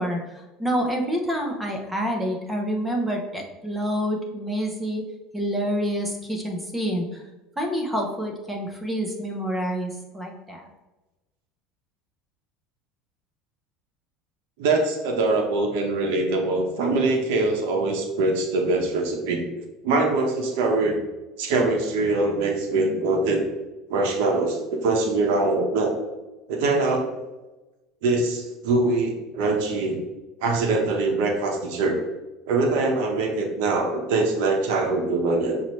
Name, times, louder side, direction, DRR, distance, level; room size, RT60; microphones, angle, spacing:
voice 1, 0.0-5.0 5.3-7.2 7.6-10.7, equal, 5° right, 1 dB, 0.7 m, -27 dB
voice 2, 14.6-19.5 19.8-21.0 21.4-23.4 23.9-26.0 26.5-27.1 28.0-30.0 30.4-32.0 32.5-35.6, right 3 dB, 80° right, 2 dB, 0.9 m, -23 dB
5.6 x 2.7 x 3.1 m, 1.1 s
supercardioid pair, 130°, 0 cm